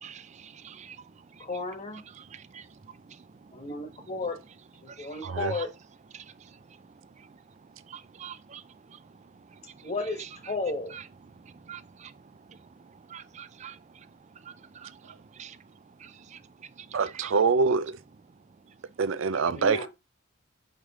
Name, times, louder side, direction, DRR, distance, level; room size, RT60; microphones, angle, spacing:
voice 1, 0.0-1.5 2.2-3.7 4.9-5.6 6.1-9.9 10.2-10.3 10.9-11.0 11.3-17.3 18.6-18.8, right 7 dB, 35° right, 0.4 m, -48 dB
voice 2, 1.4-2.0 3.5-4.4 4.8-5.7 9.8-10.9 19.4-19.9, left 3 dB, 35° left, 1.4 m, -33 dB
voice 3, 5.2-5.5 16.9-18.0 19.0-19.9, right 4 dB, 90° right, 0.5 m, -25 dB
6.3 x 5.1 x 3.7 m
head